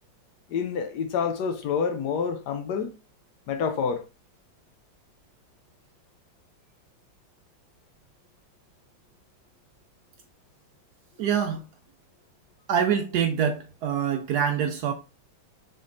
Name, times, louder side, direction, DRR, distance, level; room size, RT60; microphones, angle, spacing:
voice 1, 0.5-2.9 3.5-4.1, left 6 dB, 70° left, 1.0 m, -28 dB
voice 2, 11.2-11.6 12.7-14.9, right 8 dB, 70° right, 1.0 m, -25 dB
6.3 x 3.1 x 2.5 m
omnidirectional pair, 2.1 m